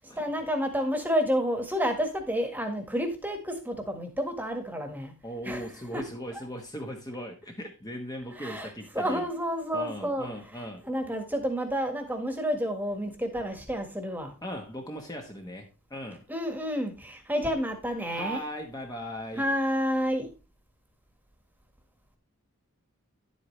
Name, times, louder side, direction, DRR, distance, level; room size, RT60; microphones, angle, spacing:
voice 1, 0.1-5.1 5.4-6.0 6.3-6.4 8.3-14.3 16.3-18.4 19.3-20.3, equal, 10° right, 1.6 m, -30 dB
voice 2, 5.2-9.3 9.7-10.8 14.4-16.2 18.1-19.4, equal, 15° left, 1.2 m, -38 dB
11.0 x 8.3 x 3.2 m
head